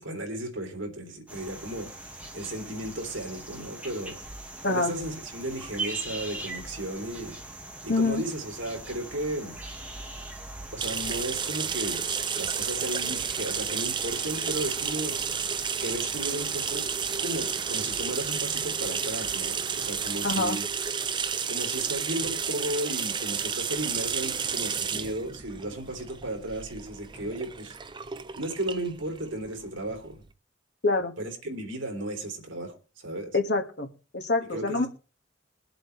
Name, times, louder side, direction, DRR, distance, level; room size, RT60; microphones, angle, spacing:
voice 1, 0.0-4.2 4.7-7.3 7.8-9.6 10.7-12.0 12.3-15.1 15.8-16.8 17.2-20.6 21.5-27.8 28.4-30.2 31.2-33.3 34.5-34.9, right 1 dB, 80° right, 3 dB, 3.4 m, -34 dB
sound 1, 1.3-20.6, right 2 dB, 5° right, 1.8 m, -42 dB
voice 2, 7.9-8.2 20.2-20.6 30.8-31.1 33.3-33.9 34.1-34.9, left 3 dB, 60° left, 6 dB, 1.8 m, -25 dB
sound 2, 10.8-30.2, right 7 dB, 25° right, 0.6 m, -31 dB
22.5 x 7.8 x 3.3 m, 0.35 s
head